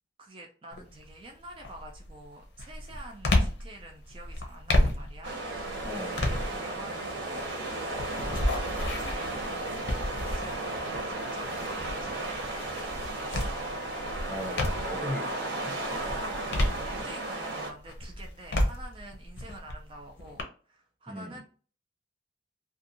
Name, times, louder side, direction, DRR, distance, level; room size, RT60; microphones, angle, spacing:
voice 1, 0.2-7.9 8.2-10.6 10.9-13.9 16.6-21.4, right 1 dB, 30° right, 0.4 m, -47 dB
sound 1, 0.7-1.1 1.6-15.1 15.6-17.4 17.8-20.4, left 1 dB, 75° left, 0.7 m, -32 dB
sound 2, 5.2-17.7, right 2 dB, 85° right, 0.8 m, -34 dB
voice 2, 5.9-6.4 14.3-16.2 21.1-21.4, left 1 dB, 10° left, 0.7 m, -39 dB
2.5 x 2.4 x 2.7 m
head